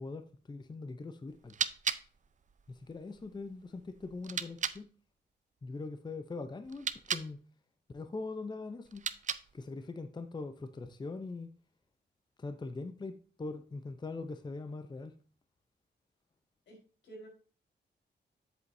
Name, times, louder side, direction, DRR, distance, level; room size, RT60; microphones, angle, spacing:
voice 1, 0.0-1.6 2.7-4.9 5.6-7.4 7.9-9.1 9.5-11.5 12.4-15.1, left 3 dB, 25° left, 0.6 m, -42 dB
sound 1, 1.3-4.8 6.6-7.3 8.9-9.7, right 6 dB, 40° right, 0.6 m, -38 dB
voice 2, 16.7-17.3, right 2 dB, 80° left, 4.4 m, -51 dB
8.0 x 7.9 x 2.7 m
wide cardioid pair, 120°, 19 cm